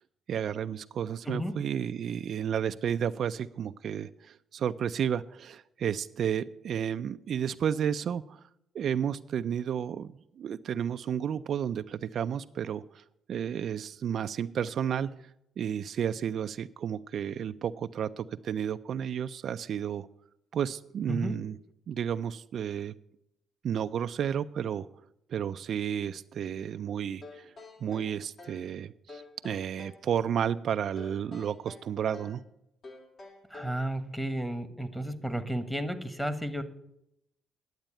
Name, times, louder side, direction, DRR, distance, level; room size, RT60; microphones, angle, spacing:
voice 1, 0.3-8.4 8.7-15.1 15.6-20.1 20.5-21.6 21.9-22.9 23.6-24.9 25.3-27.5 27.8-32.4, right 8 dB, 65° right, 10 dB, 0.4 m, -32 dB
sound 1, 27.2-28.7 29.1-30.0 31.0-32.4 32.8-33.9, left 3 dB, 55° left, 2.9 m, -49 dB
voice 2, 33.5-36.6, right 1 dB, 5° left, 11 dB, 1.3 m, -33 dB
10.5 x 8.1 x 8.8 m, 0.80 s
cardioid pair, 90°, 0 cm